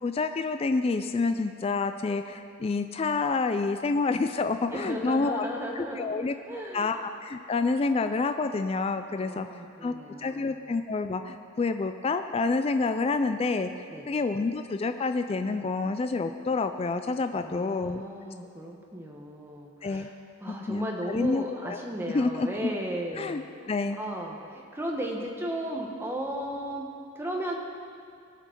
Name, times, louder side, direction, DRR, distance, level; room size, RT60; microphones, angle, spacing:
voice 1, 0.0-5.4 5.8-6.3 6.7-9.5 9.8-9.9 10.2-13.7 14.1-18.0 19.8-20.1 20.5-21.8 22.1-22.5 23.2-24.0, left 3 dB, 30° left, 8 dB, 0.3 m, -28 dB
voice 2, 4.7-6.1 6.4-7.0 9.2-10.6 13.9-14.1 17.3-20.1 20.4-23.4 24.0-26.9 27.1-27.6, equal, 10° right, -1 dB, 1.1 m, -35 dB
17.5 x 5.9 x 4.5 m, 2.4 s
head